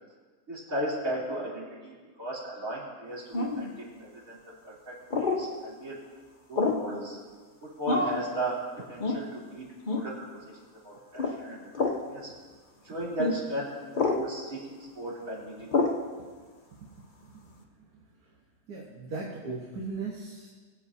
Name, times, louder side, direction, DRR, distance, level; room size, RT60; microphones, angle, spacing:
voice 1, 0.5-4.4 4.7-6.0 6.5-7.2 7.6-8.6 8.9-10.4 10.8-11.7 12.1-12.3 12.8-15.7, right 1 dB, 60° right, -7 dB, 3.8 m, -36 dB
sound 1, 3.3-3.7 5.1-5.4 6.6-6.9 7.9-8.2 9.0-9.2 9.9-10.1 11.2-11.4 11.7-12.0 13.2-13.4 13.9-14.2 15.7-16.0, left 3 dB, 35° left, 1.0 m, -27 dB
voice 2, 17.3-17.6 18.7-20.5, right 3 dB, 75° right, -3 dB, 1.8 m, -38 dB
22.5 x 8.6 x 2.8 m, 1.4 s
omnidirectional pair, 1.6 m